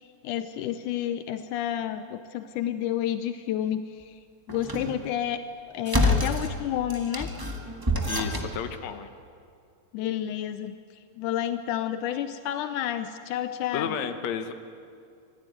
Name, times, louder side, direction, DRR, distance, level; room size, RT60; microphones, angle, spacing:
voice 1, 0.2-4.1 4.5-5.4 5.7-7.3 9.9-10.7 11.2-14.0, left 11 dB, 85° left, 10 dB, 2.2 m, -30 dB
sound 1, 4.5-5.0 5.9-6.5 6.9-8.6, left 1 dB, 15° right, 0.9 m, -27 dB
voice 2, 8.1-9.1 13.7-14.5, left 8 dB, 65° left, 8 dB, 2.3 m, -32 dB
25.0 x 16.0 x 9.2 m, 2.3 s
omnidirectional pair, 3.5 m